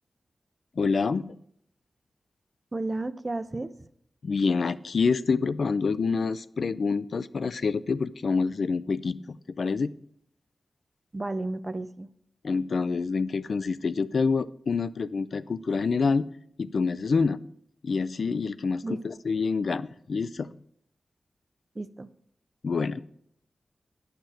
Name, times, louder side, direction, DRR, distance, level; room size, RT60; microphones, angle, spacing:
voice 1, 0.8-1.4 4.2-9.9 12.4-16.3 16.6-17.4 17.8-20.5 22.6-23.0, left 4 dB, 65° left, 15 dB, 0.4 m, -27 dB
voice 2, 2.7-3.7 11.1-12.1 18.8-19.2 21.7-22.1, right 2 dB, 30° right, 12 dB, 0.6 m, -33 dB
10.5 x 5.8 x 6.2 m, 0.68 s
wide cardioid pair, 90°, 0 cm